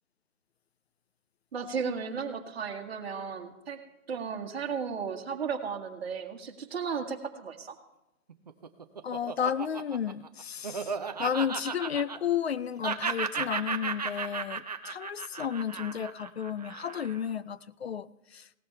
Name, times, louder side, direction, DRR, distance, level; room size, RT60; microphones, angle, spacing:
voice 1, 1.5-3.8 4.1-7.8, right 6 dB, 45° right, 2 dB, 1.9 m, -35 dB
Laughter, 8.3-12.5 12.8-17.3, right 5 dB, 30° right, 0.6 m, -35 dB
voice 2, 9.0-10.9 11.2-18.4, left 8 dB, 50° left, 17 dB, 0.5 m, -32 dB
17.5 x 13.5 x 3.4 m, 0.92 s
hypercardioid pair, 155°, 42 cm